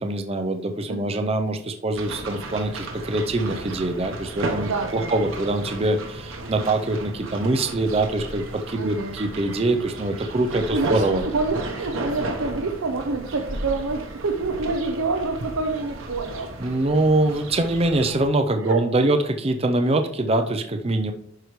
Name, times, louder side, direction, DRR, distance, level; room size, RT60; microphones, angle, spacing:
voice 1, 0.0-4.7 5.1-11.2 16.6-21.1, right 2 dB, 30° right, 6 dB, 0.5 m, -23 dB
voice 2, 0.9-1.3 4.6-5.5 8.8-9.2 10.7-16.5 18.6-18.8, right 3 dB, 90° right, 3 dB, 0.7 m, -27 dB
sound 1, 2.0-18.2, right 2 dB, 65° right, 1.0 m, -34 dB
11.5 x 4.8 x 3.1 m, 0.68 s
head